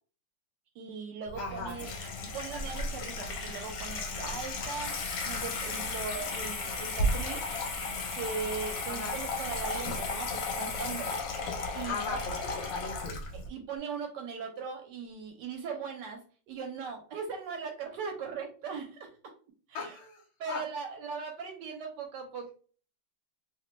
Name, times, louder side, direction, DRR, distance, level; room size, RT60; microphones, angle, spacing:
voice 1, 0.8-1.9 2.2-7.4 8.0-11.2 11.7-12.2 13.3-19.1 19.7-20.0 20.4-22.5, right 5 dB, 75° right, 3 dB, 1.1 m, -39 dB
Water tap faucet / Sink (filling or washing), 1.3-13.5, left 2 dB, 65° left, 0.9 m, -34 dB
voice 2, 1.4-1.8 8.9-9.2 11.9-12.3 12.7-13.2 19.7-20.6, left 4 dB, 85° left, 1 dB, 1.3 m, -38 dB
3.0 x 2.1 x 3.0 m, 0.40 s
omnidirectional pair, 2.0 m